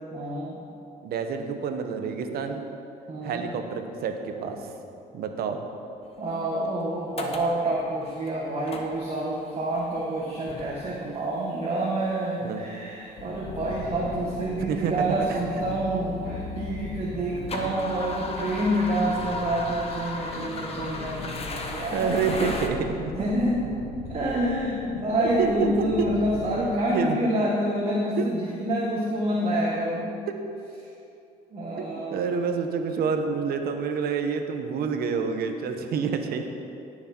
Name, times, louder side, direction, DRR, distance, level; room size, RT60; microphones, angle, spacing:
voice 1, 0.1-0.6 3.1-3.5 6.2-22.5 23.1-23.6 24.1-30.1 31.5-32.3, right 1 dB, 35° right, -5 dB, 1.8 m, -28 dB
voice 2, 1.0-2.6 3.2-4.7 5.1-5.7 11.0-11.1 12.4-12.6 14.5-14.9 15.3-15.4 17.6-17.7 21.9-23.1 25.4-26.1 26.9-27.2 28.2-28.3 30.3-30.4 31.8-36.5, right 6 dB, 65° right, 6 dB, 1.1 m, -28 dB
sound 1, 6.7-6.8 7.2-7.6 8.0-8.3 8.7-9.3 9.8-10.1 10.5-11.2 12.1-12.2 13.1-13.2 13.6-13.7 14.4-14.5 14.7-16.6 17.0-22.7, left 2 dB, 35° left, 1.2 m, -36 dB
sound 2, 13.2-26.8, left 4 dB, 65° left, 1.1 m, -39 dB
17.5 x 6.5 x 4.6 m, 2.7 s
cardioid pair, 110°, 17 cm